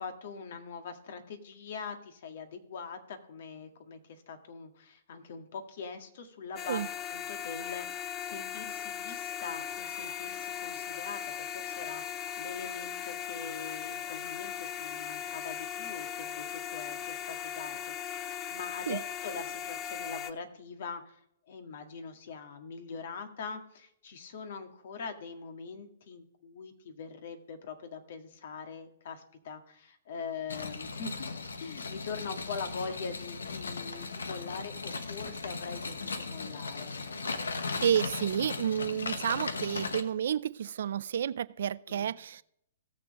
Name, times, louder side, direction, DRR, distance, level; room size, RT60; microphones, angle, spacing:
voice 1, 0.0-6.8 7.1-21.2 21.5-31.3 31.6-36.9 41.9-42.1, left 5 dB, 65° left, 6 dB, 1.8 m, -43 dB
sound 1, 6.6-20.3, left 9 dB, 30° left, 0.7 m, -38 dB
sound 2, 30.5-40.0, left 4 dB, 90° left, 1.1 m, -37 dB
voice 2, 37.8-42.4, right 9 dB, 70° right, 18 dB, 0.4 m, -30 dB
18.0 x 6.9 x 3.1 m, 0.73 s
hypercardioid pair, 130°, 0 cm